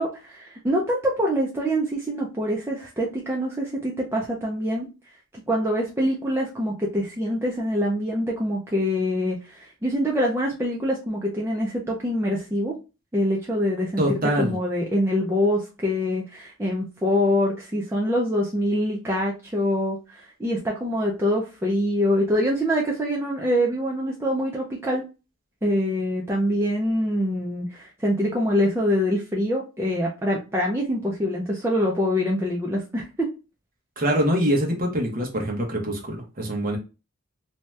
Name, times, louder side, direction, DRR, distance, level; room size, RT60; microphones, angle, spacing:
voice 1, 0.0-4.9 5.5-12.7 13.1-25.0 25.6-33.3, equal, 10° right, 0.4 m, -25 dB
voice 2, 14.0-14.5 34.0-36.8, equal, 40° right, 0.9 m, -24 dB
2.7 x 2.2 x 3.1 m
head